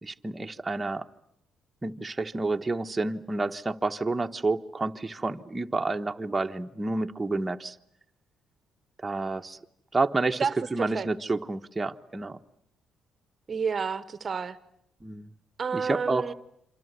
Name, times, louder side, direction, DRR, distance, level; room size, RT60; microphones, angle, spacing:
voice 1, 0.0-1.1 1.8-7.8 9.0-9.6 9.9-12.4 15.0-15.3 15.7-16.3, right 3 dB, 20° right, 4 dB, 1.3 m, -29 dB
voice 2, 10.4-11.1 13.5-14.6 15.6-16.3, right 5 dB, 40° right, 13 dB, 1.1 m, -30 dB
27.0 x 26.0 x 8.2 m, 0.75 s
cardioid pair, 90°, 0 cm